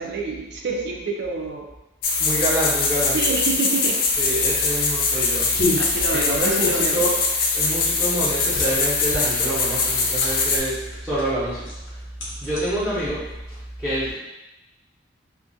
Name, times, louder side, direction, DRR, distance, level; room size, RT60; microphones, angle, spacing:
voice 1, 0.0-1.7 3.1-4.0 5.8-7.0, right 4 dB, 55° right, 1 dB, 0.4 m, -27 dB
sound 1, 2.0-10.6, left 4 dB, 50° left, 0.3 m, -22 dB
voice 2, 2.2-3.2 4.2-5.5 6.1-7.2 7.5-11.6 12.4-13.3 13.8-14.1, right 1 dB, 5° right, -15 dB, 0.7 m, -26 dB
sound 2, 4.0-13.6, left 1 dB, 80° left, 0.7 m, -33 dB
2.4 x 2.1 x 2.6 m, 0.97 s
head